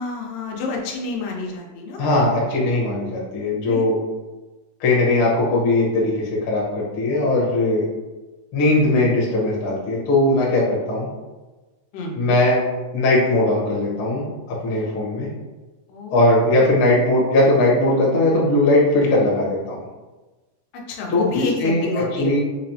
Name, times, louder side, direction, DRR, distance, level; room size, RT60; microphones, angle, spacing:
voice 1, 0.0-2.0 3.7-3.9 11.9-12.3 15.9-16.2 20.9-22.3, left 3 dB, 85° left, 0 dB, 2.3 m, -28 dB
voice 2, 2.0-4.0 4.8-7.8 8.5-11.1 12.2-12.6 12.9-15.3 16.1-19.8 21.1-21.2 21.6-22.4, left 2 dB, 70° left, -5 dB, 1.2 m, -19 dB
5.9 x 2.0 x 2.7 m, 1.2 s
omnidirectional pair, 3.7 m